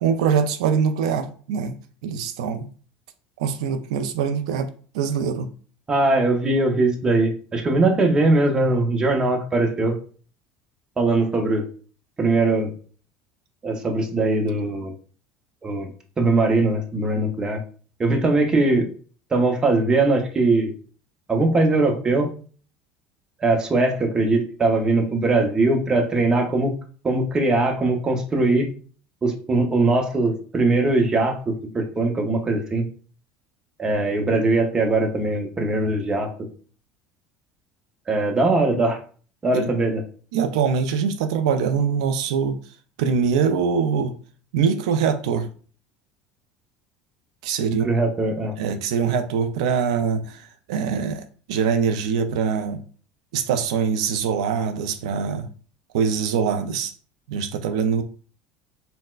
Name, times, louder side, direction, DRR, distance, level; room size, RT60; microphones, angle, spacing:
voice 1, 0.0-2.7 3.4-4.7 4.9-5.5 39.5-39.7 40.3-42.6 43.0-44.2 44.5-45.5 47.4-47.9 48.6-52.8 53.3-55.5 55.9-56.9 57.3-58.0, right 6 dB, 90° right, 7 dB, 0.3 m, -23 dB
voice 2, 5.9-10.0 11.0-11.7 12.2-12.7 13.6-14.9 15.6-15.9 16.2-17.6 18.0-18.9 19.3-20.7 21.3-22.3 23.4-26.7 27.0-28.7 29.2-32.9 33.8-36.3 38.1-39.0 39.4-40.0 47.6-48.5, right 2 dB, 20° right, 3 dB, 0.7 m, -21 dB
4.0 x 2.1 x 2.3 m, 0.42 s
supercardioid pair, 115°, 3 cm